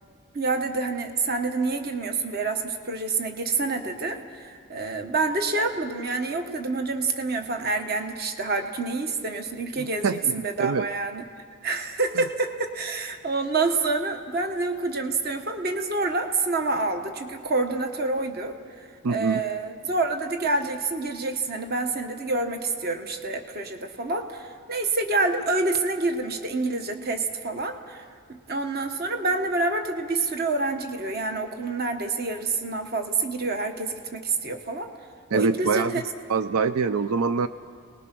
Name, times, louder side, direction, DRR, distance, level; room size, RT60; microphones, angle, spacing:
voice 1, 0.3-11.2 11.6-18.5 19.1-28.0 28.3-34.9 35.3-36.0, right 3 dB, 45° right, 5 dB, 1.3 m, -27 dB
voice 2, 9.8-10.3 10.6-10.9 12.2-12.3 19.0-19.4 35.3-36.0 36.3-37.5, right 5 dB, 80° right, 12 dB, 0.5 m, -24 dB
29.5 x 20.0 x 6.1 m, 2.1 s
head